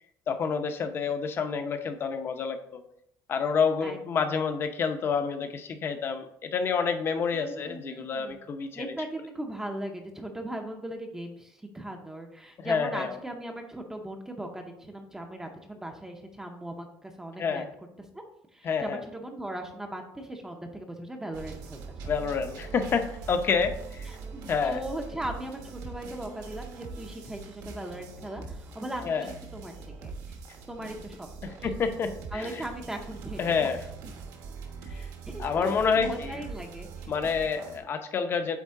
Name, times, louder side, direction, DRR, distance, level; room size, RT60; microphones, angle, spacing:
voice 1, 0.3-2.8 3.3-8.9 12.6-13.2 17.4-17.6 18.6-19.0 22.1-24.1 24.5-24.8 29.0-29.3 31.4-32.6 33.4-33.8 35.0-35.1 35.4-36.4 37.1-38.6, left 5 dB, 35° left, 7 dB, 0.6 m, -28 dB
voice 2, 3.8-4.4 7.3-8.4 8.7-17.7 18.0-18.2 18.5-21.8 24.1-29.7 30.0-30.2 30.7-31.7 32.3-33.7 34.9-37.1, right 1 dB, 5° right, 3 dB, 0.6 m, -38 dB
sound 1, 21.3-37.8, right 4 dB, 65° right, 1.2 m, -42 dB
8.5 x 3.6 x 3.6 m, 0.74 s
cardioid pair, 165°, 7 cm